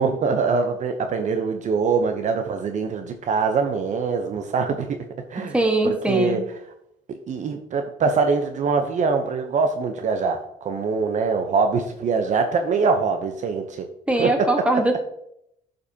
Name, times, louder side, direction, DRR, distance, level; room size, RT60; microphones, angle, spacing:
voice 1, 0.0-4.9 5.3-5.5 5.8-6.4 7.3-13.8 14.2-14.3, right 5 dB, 45° right, 6 dB, 0.7 m, -23 dB
voice 2, 5.4-6.4 14.1-15.0, right 1 dB, 5° right, 3 dB, 1.3 m, -21 dB
11.0 x 5.2 x 2.8 m, 0.77 s
cardioid pair, 110°, 17 cm